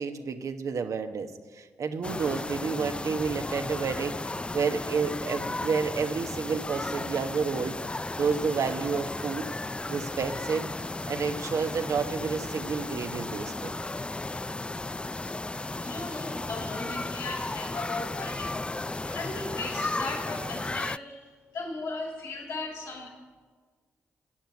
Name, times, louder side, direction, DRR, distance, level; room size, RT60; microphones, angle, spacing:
voice 1, 0.0-7.7 8.2-9.5 9.9-10.7 11.1-13.7 19.0-19.2, right 5 dB, 65° right, 7 dB, 1.2 m, -30 dB
sound 1, 2.0-21.0, left 2 dB, 20° left, 0.3 m, -34 dB
voice 2, 15.8-18.7 19.1-23.1, left 3 dB, 75° left, -2 dB, 5.3 m, -37 dB
15.0 x 9.0 x 9.7 m, 1.5 s
hypercardioid pair, 40°, 6 cm